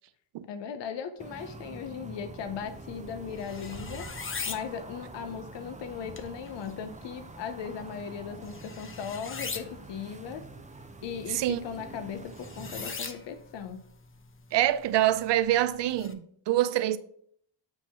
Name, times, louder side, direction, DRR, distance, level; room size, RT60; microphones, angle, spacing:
voice 1, 0.5-4.1 4.5-10.4 11.0-13.8, left 7 dB, 75° left, 0.7 m, -38 dB
sound 1, 1.2-12.9, right 3 dB, 15° right, 0.6 m, -46 dB
sound 2, 2.7-16.1, left 5 dB, 30° left, 0.7 m, -43 dB
voice 2, 11.3-11.6 14.5-17.0, right 13 dB, 70° right, 0.6 m, -25 dB
8.0 x 2.8 x 5.8 m
cardioid pair, 85°, 44 cm